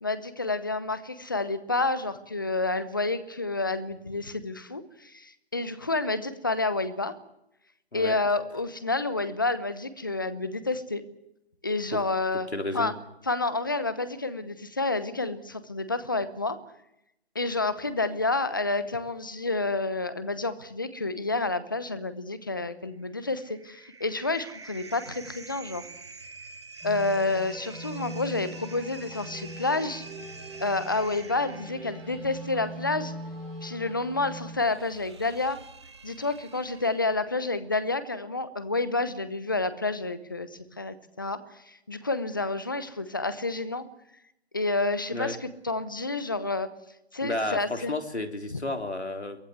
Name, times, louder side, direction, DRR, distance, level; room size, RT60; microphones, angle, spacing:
voice 1, 0.0-7.1 7.9-11.0 11.6-12.5 12.7-12.9 13.3-16.6 17.3-25.9 26.8-30.0 30.6-33.1 33.6-35.6 36.0-43.8 44.5-46.7 47.1-47.9 48.5-48.6, left 3 dB, 20° left, 13 dB, 0.9 m, -29 dB
voice 2, 12.5-12.9 45.1-45.4 47.2-49.4, left 2 dB, 85° left, 5 dB, 3.6 m, -32 dB
sound 1, 22.9-37.5, right 4 dB, 25° right, 1.3 m, -47 dB
sound 2, 26.8-34.6, equal, ahead, 5.2 m, -41 dB
23.5 x 17.5 x 8.1 m, 0.82 s
figure-of-eight pair, 165°, 32 cm